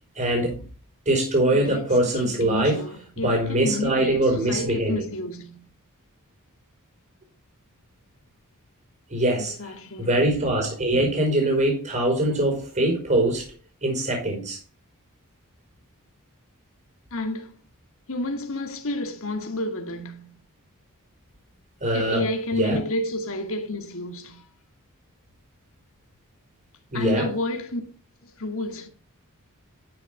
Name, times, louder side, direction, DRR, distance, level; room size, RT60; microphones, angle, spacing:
voice 1, 0.1-0.6 1.0-2.8 3.2-5.1 9.1-9.7 10.0-13.5 13.8-14.6 21.8-22.3 22.5-22.8 26.9-27.3, right 1 dB, 35° right, 4.4 m, -23 dB
voice 2, 1.5-1.8 2.1-5.6 9.4-10.2 17.1-17.5 18.1-20.3 21.9-24.4 26.9-27.8 28.2-28.9, left 1 dB, 65° left, 2.2 m, -30 dB
11.5 x 6.9 x 3.5 m
head